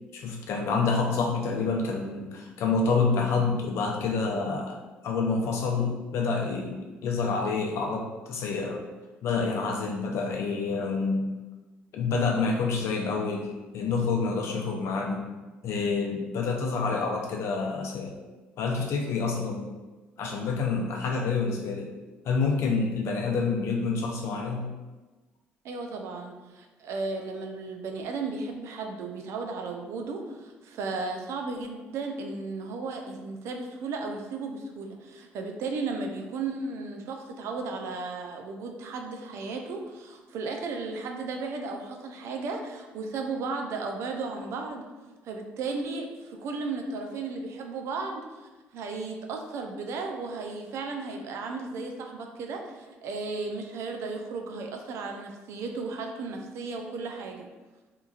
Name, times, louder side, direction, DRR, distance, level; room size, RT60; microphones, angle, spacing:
voice 1, 0.1-4.8 5.0-8.8 9.2-11.3 11.9-15.3 15.6-18.1 18.6-19.7 20.2-21.9 22.2-24.7, left 4 dB, 65° left, 1 dB, 0.5 m, -28 dB
voice 2, 25.6-44.8 45.2-57.5, right 3 dB, 65° right, 3 dB, 0.4 m, -35 dB
2.9 x 2.4 x 2.3 m, 1.2 s
supercardioid pair, 65°, 5 cm